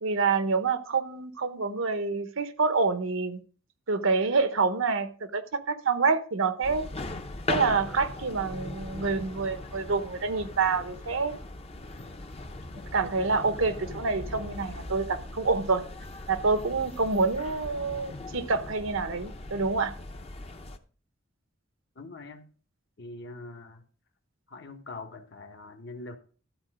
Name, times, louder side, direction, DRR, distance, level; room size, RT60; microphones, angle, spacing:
voice 1, 0.0-3.4 3.9-6.8 7.5-11.3 12.9-15.8 16.3-19.9, right 4 dB, 75° right, 1.0 m, -27 dB
sound 1, 6.6-20.8, left 2 dB, 30° left, 0.7 m, -39 dB
voice 2, 22.0-22.5 23.0-23.8 24.5-26.2, left 2 dB, 60° left, 1.3 m, -43 dB
12.5 x 4.4 x 6.2 m
head